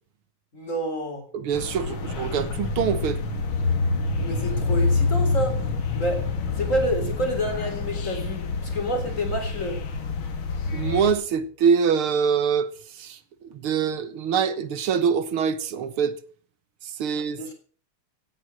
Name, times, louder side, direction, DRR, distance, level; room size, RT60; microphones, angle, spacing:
voice 1, 0.5-1.2 4.2-5.7 5.9-9.8 17.3-17.5, equal, 35° left, 3.9 m, -28 dB
voice 2, 1.3-3.2 10.7-13.2 13.4-16.2 16.8-17.4, right 7 dB, 85° right, 2.1 m, -24 dB
sound 1, 1.5-11.1, left 3 dB, 75° left, 2.7 m, -27 dB
17.5 x 9.4 x 6.3 m
omnidirectional pair, 2.3 m